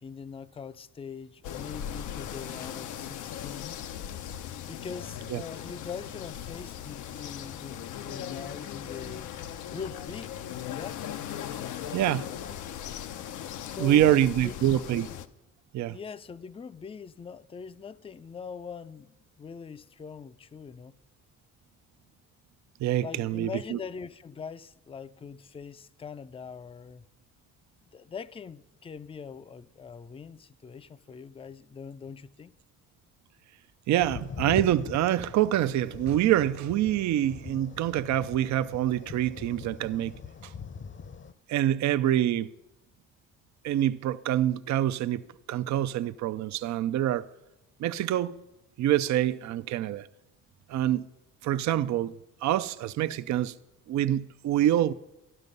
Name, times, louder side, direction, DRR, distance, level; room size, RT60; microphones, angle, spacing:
voice 1, 0.0-3.8 4.7-9.3 9.7-10.3 10.6-11.0 13.7-14.6 15.9-21.0 23.0-27.1 27.8-32.5, left 6 dB, 20° left, 0.4 m, -42 dB
sound 1, 1.4-15.3, left 10 dB, 85° left, 0.7 m, -38 dB
voice 2, 11.9-12.3 13.8-15.1 15.7-16.0 22.8-23.8 33.9-40.1 40.4-40.5 41.5-42.5 43.6-45.2 45.5-47.3 47.8-48.4 48.8-50.1 50.7-51.1 51.4-52.1 52.4-53.5 53.9-54.9, right 12 dB, 65° right, 0.5 m, -26 dB
sound 2, 34.0-41.3, left 6 dB, 40° left, 0.8 m, -42 dB
12.5 x 12.0 x 5.3 m
cardioid pair, 90°, 30 cm